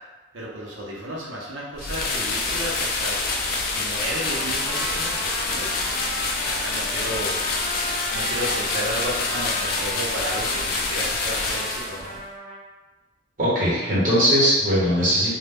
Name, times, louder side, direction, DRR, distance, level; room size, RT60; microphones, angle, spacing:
voice 1, 0.3-3.2 3.7-5.7 6.4-7.4 8.1-12.2, equal, 80° right, -4 dB, 0.7 m, -32 dB
sound 1, 1.8-12.2, left 3 dB, 50° left, 0.3 m, -26 dB
Trumpet, 4.1-12.6, equal, 10° left, 0.6 m, -35 dB
voice 2, 13.4-15.3, equal, 45° right, -9 dB, 1.1 m, -20 dB
2.2 x 2.1 x 3.3 m, 1.2 s
head